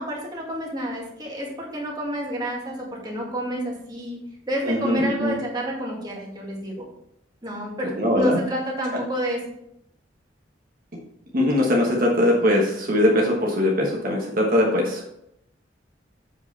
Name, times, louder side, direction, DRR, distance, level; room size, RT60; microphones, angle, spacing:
voice 1, 0.0-4.2 4.5-6.8 7.4-9.4, equal, 20° right, -2 dB, 2.0 m, -29 dB
voice 2, 4.6-5.3 8.0-8.4 8.9-9.0 11.3-15.2, left 1 dB, 50° right, -1 dB, 1.3 m, -21 dB
7.5 x 5.1 x 4.1 m, 0.77 s
head